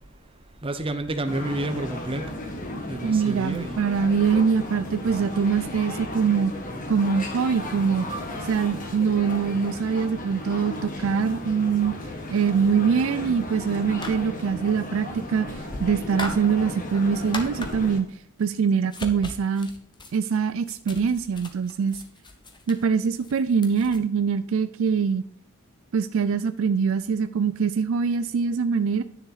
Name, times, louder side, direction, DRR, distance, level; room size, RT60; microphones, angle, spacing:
voice 1, 0.6-2.3 2.9-3.8 7.1-7.3 8.1-8.2, right 2 dB, 25° right, 8 dB, 0.7 m, -30 dB
sound 1, 1.3-18.0, left 1 dB, 40° left, 1.5 m, -35 dB
voice 2, 3.0-6.5 6.9-8.1 8.5-11.9 12.3-18.1 18.4-19.7 20.1-22.0 22.7-25.2 25.9-29.0, right 6 dB, 65° right, 13 dB, 0.4 m, -23 dB
sound 2, 13.9-14.6 15.4-18.2 18.8-24.0, left 2 dB, 20° left, 1.0 m, -39 dB
9.9 x 6.5 x 4.0 m, 0.64 s
head